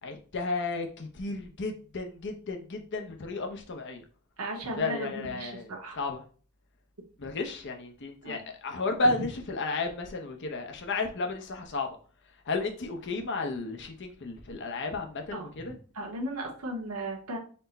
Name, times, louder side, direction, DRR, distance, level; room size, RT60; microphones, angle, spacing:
voice 1, 0.0-4.0 4.8-6.2 7.2-11.9 12.5-15.7, left 3 dB, 55° left, 4 dB, 0.7 m, -33 dB
voice 2, 4.4-6.0 8.2-8.4 9.0-9.3 15.3-15.5 15.9-17.4, right 1 dB, 80° right, 0 dB, 1.0 m, -36 dB
4.3 x 2.1 x 4.0 m, 0.40 s
head